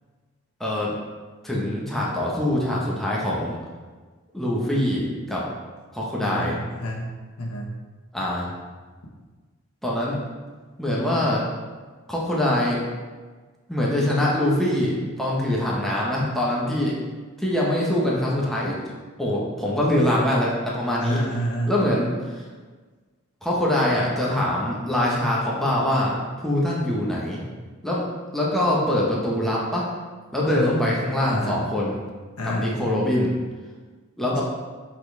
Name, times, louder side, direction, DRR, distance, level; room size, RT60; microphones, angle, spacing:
voice 1, 0.6-0.9 1.4-3.6 4.3-5.4 5.9-6.6 8.1-8.6 9.8-10.2 10.8-11.5 12.1-12.8 13.7-16.9 17.4-18.8 19.2-21.2 21.7-22.5 23.4-27.4 27.8-28.0 28.3-29.9 30.3-32.0 32.4-33.3 34.2-34.4, left 1 dB, ahead, -5 dB, 1.1 m, -23 dB
voice 2, 6.2-7.1 7.4-7.7 21.0-21.7 30.4-30.8 31.3-31.6 32.4-32.8, equal, 90° left, -2 dB, 1.3 m, -28 dB
7.7 x 4.2 x 3.4 m, 1.4 s
head